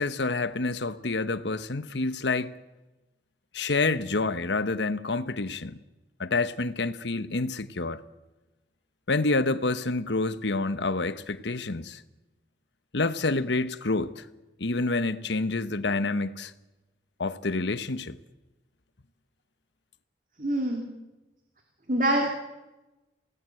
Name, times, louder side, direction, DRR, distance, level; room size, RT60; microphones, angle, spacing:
voice 1, 0.0-2.5 3.5-5.8 6.2-8.0 9.1-12.0 12.9-14.3 14.6-16.5 17.2-18.2, left 3 dB, 80° left, 1.1 m, -28 dB
voice 2, 20.4-20.8 21.9-22.3, right 1 dB, 45° right, 2.7 m, -24 dB
28.5 x 18.0 x 7.8 m
head